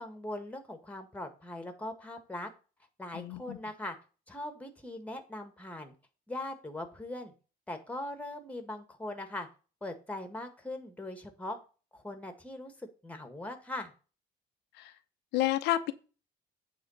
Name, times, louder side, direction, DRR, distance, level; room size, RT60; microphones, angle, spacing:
voice 1, 0.0-2.5 3.0-3.9 4.3-5.9 6.3-7.3 7.7-9.5 9.8-11.6 11.9-12.7 13.0-13.9, left 1 dB, 10° left, 7 dB, 1.7 m, -40 dB
voice 2, 3.1-3.6 14.8-14.9 15.3-15.9, left 14 dB, 85° left, 9 dB, 0.8 m, -30 dB
8.7 x 3.7 x 7.0 m, 0.35 s
cardioid pair, 110°, 17 cm